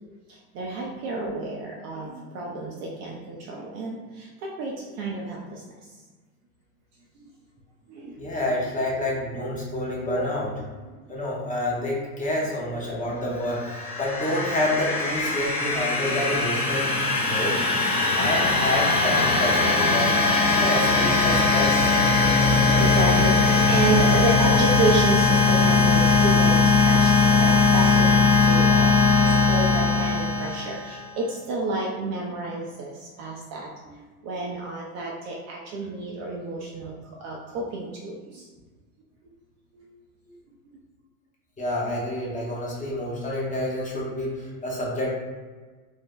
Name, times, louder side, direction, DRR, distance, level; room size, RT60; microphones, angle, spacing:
voice 1, 0.3-5.9 7.9-8.3 10.7-11.5 12.0-12.1 22.4-36.9 37.2-38.5 39.7-39.9, right 3 dB, 40° right, -2 dB, 0.4 m, -30 dB
voice 2, 8.2-10.6 11.1-17.0 17.2-17.6 18.1-20.2 20.5-22.0 29.2-29.3 40.3-40.4 41.6-45.1, left 1 dB, 15° left, -4 dB, 0.7 m, -28 dB
sound 1, 13.4-31.0, left 3 dB, 55° left, 1.2 m, -20 dB
2.6 x 2.1 x 3.6 m, 1.3 s
hypercardioid pair, 100°, 46 cm